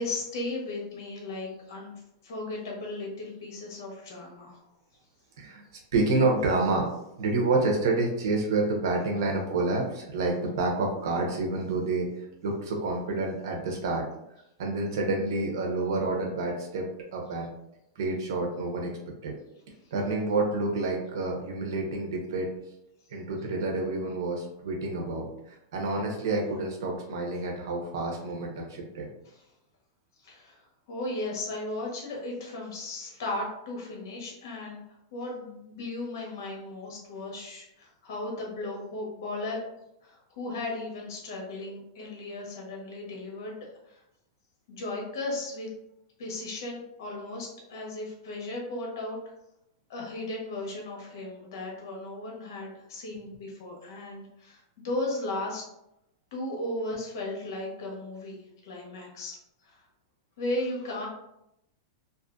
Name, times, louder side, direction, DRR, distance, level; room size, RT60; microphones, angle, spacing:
voice 1, 0.0-1.9 2.2-4.6 19.8-19.9 29.2-29.4 30.2-34.8 35.1-39.6 40.0-43.6 43.9-44.0 44.7-45.7 46.2-49.3 49.9-55.6 56.3-58.4 58.6-59.8 60.4-61.1, left 2 dB, 70° left, -1 dB, 1.1 m, -36 dB
voice 2, 5.9-6.9 7.2-14.0 14.6-16.9 17.1-17.5 18.0-18.9 19.2-19.3 19.9-22.5 23.1-29.1, right 3 dB, 75° right, 1 dB, 0.8 m, -28 dB
2.6 x 2.4 x 2.5 m, 0.83 s
supercardioid pair, 140°, 2 cm